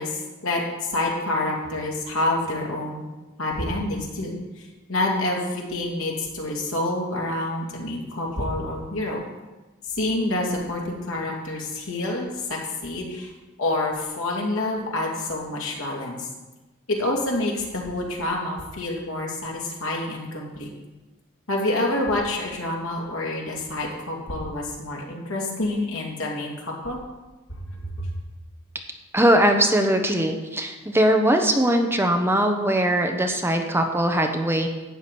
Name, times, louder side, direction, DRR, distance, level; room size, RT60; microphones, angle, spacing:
voice 1, 0.0-3.0 3.4-9.2 9.9-13.3 13.6-16.3 16.9-20.7 21.5-27.0 27.5-28.1, left 2 dB, 90° left, -1 dB, 2.6 m, -28 dB
voice 2, 29.1-34.7, right 1 dB, 10° right, 4 dB, 0.9 m, -20 dB
12.0 x 4.9 x 8.5 m, 1.1 s
head